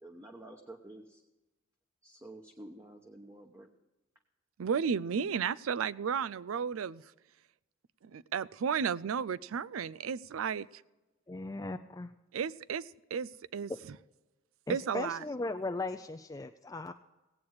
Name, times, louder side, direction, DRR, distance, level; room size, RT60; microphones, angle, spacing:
voice 1, 0.0-1.2 2.0-3.7 11.3-11.4, right 1 dB, 15° right, 1 dB, 0.9 m, -50 dB
voice 2, 4.6-7.0 8.0-10.8 12.3-13.7 14.7-15.2, right 6 dB, 85° right, 18 dB, 0.4 m, -33 dB
voice 3, 11.3-12.1 14.7-16.9, left 2 dB, 15° left, 7 dB, 0.4 m, -37 dB
17.5 x 8.6 x 4.7 m, 1.1 s
head